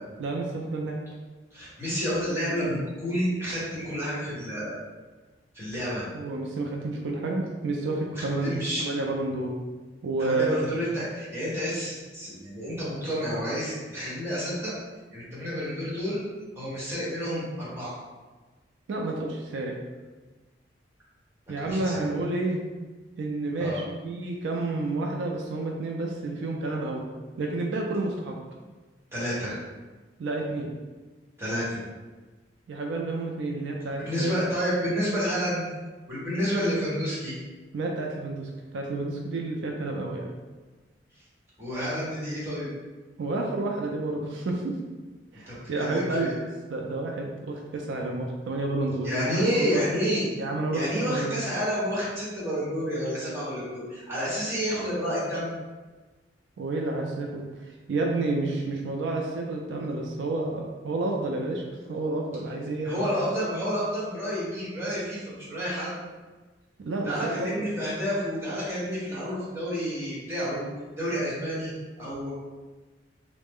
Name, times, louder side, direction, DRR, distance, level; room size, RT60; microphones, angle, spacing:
voice 1, 0.2-1.1 6.1-9.5 10.0-10.8 18.9-19.7 21.5-22.6 23.2-27.0 27.4-28.4 30.2-30.7 32.7-34.3 37.7-40.3 43.2-44.7 45.3-49.8 50.4-51.3 56.6-61.6 61.9-63.1 66.8-67.6, right 2 dB, 70° right, 0 dB, 0.4 m, -30 dB
voice 2, 1.5-4.8 5.5-6.0 8.2-8.9 10.2-14.7 15.1-16.2 16.5-18.0 21.6-22.1 23.6-23.8 29.1-29.5 31.4-31.8 34.0-35.6 36.1-37.4 41.6-42.7 45.5-46.3 49.0-50.3 50.7-55.5 62.8-65.9 67.0-70.7 71.0-71.7 72.0-72.3, equal, 15° right, -9 dB, 1.2 m, -29 dB
3.2 x 2.0 x 3.5 m, 1.3 s
head